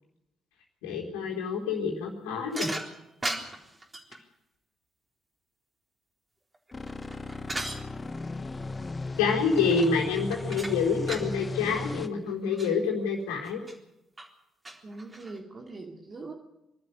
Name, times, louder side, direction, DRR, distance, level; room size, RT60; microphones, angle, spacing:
voice 1, 0.8-2.7 9.2-13.6, left 5 dB, 75° left, -1 dB, 4.0 m, -27 dB
sound 1, 2.5-4.2 6.5-7.8 9.5-10.0 10.3-11.3 11.9-12.0 12.3-12.7 13.4-13.8 14.2-14.3 14.7-15.4, right 1 dB, 20° right, 3.9 m, -37 dB
sound 2, 6.7-12.1, left 3 dB, 30° left, 1.2 m, -36 dB
voice 2, 14.8-16.3, right 3 dB, 40° right, 1 dB, 2.5 m, -42 dB
24.5 x 12.5 x 9.9 m, 0.91 s
hypercardioid pair, 45°, 0 cm